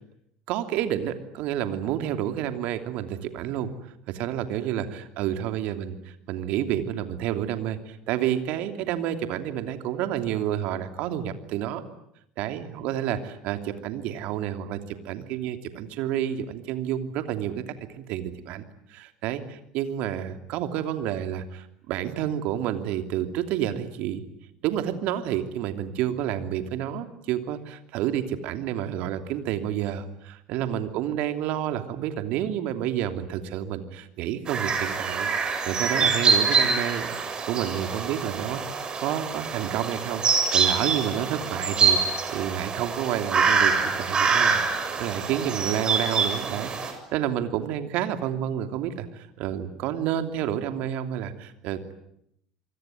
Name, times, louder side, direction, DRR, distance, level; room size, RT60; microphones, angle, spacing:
voice 1, 0.5-3.7 4.1-11.8 12.4-17.6 18.0-18.6 18.9-24.3 24.6-35.3 35.6-40.2 40.5-51.9, right 11 dB, 60° right, 8 dB, 2.9 m, -29 dB
sound 1, 34.5-46.9, right 5 dB, 35° right, 7.3 m, -25 dB
27.0 x 23.5 x 9.2 m, 0.76 s
hypercardioid pair, 70°, 3 cm